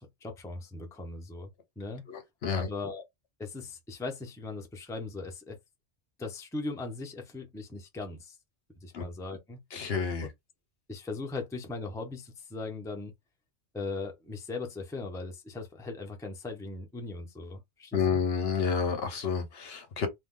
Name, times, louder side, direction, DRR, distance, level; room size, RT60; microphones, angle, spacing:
voice 1, 0.0-1.5 1.8-2.0 2.6-3.0 3.4-5.6 6.2-8.4 8.8-9.6 10.9-13.1 13.7-18.2, left 3 dB, 5° left, 0.6 m, -39 dB
voice 2, 2.1-2.7 8.9-9.0 9.7-10.3 17.9-20.1, left 6 dB, 60° left, 0.9 m, -30 dB
2.8 x 2.3 x 3.6 m
omnidirectional pair, 1.2 m